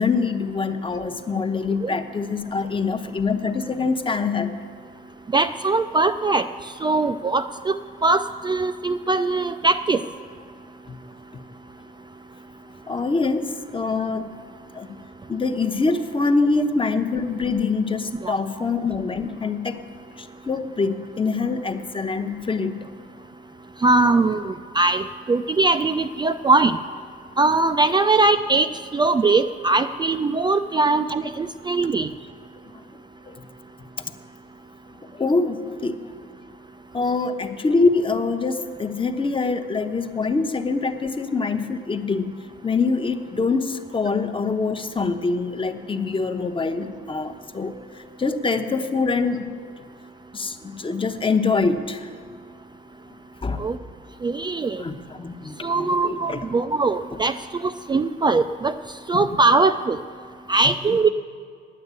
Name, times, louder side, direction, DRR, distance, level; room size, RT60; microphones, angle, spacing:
voice 1, 0.0-4.5 10.9-11.0 12.9-14.3 14.7-15.0 15.3-19.8 20.2-22.9 32.7-32.8 33.3-33.4 35.0-36.0 36.9-49.4 50.3-52.1 53.4-53.6 54.8-56.5 57.1-57.2 60.9-61.1, left 4 dB, 25° left, 7 dB, 0.9 m, -24 dB
voice 2, 5.3-6.4 6.8-7.7 8.0-10.0 18.2-18.3 23.8-26.7 27.4-28.7 28.9-32.1 53.6-53.8 54.2-54.8 55.6-57.3 57.9-58.7 59.1-60.0 60.5-61.1, right 3 dB, 20° right, 9 dB, 0.4 m, -20 dB
9.5 x 9.4 x 8.2 m, 2.2 s
cardioid pair, 90°, 20 cm